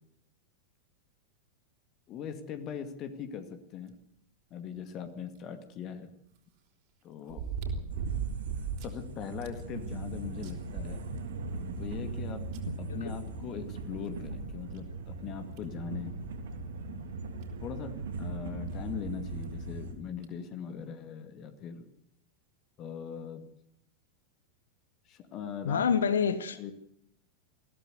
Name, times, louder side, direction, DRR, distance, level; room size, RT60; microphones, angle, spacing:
voice 1, 2.1-3.9 4.5-6.1 7.0-7.5 8.8-11.0 11.8-12.4 12.8-16.1 17.6-17.9 18.2-21.9 22.8-23.4 25.1-25.8 26.6-26.7, left 8 dB, 35° left, 8 dB, 2.2 m, -40 dB
sound 1, 5.4-5.5 7.3-9.0 9.4-9.5 10.0-10.1 10.4-11.5 12.5-12.6 14.1-14.2 14.7-14.8 15.6-15.8 17.1-17.2 17.4-17.5 19.2-19.5 20.2-20.3, right 6 dB, 45° right, 3.9 m, -36 dB
sound 2, 7.9-19.9, right 3 dB, 60° right, 3.2 m, -39 dB
voice 2, 12.7-13.2 25.6-26.7, left 6 dB, 65° left, 15 dB, 1.2 m, -28 dB
20.5 x 16.0 x 8.2 m, 0.75 s
figure-of-eight pair, 90°, 0 cm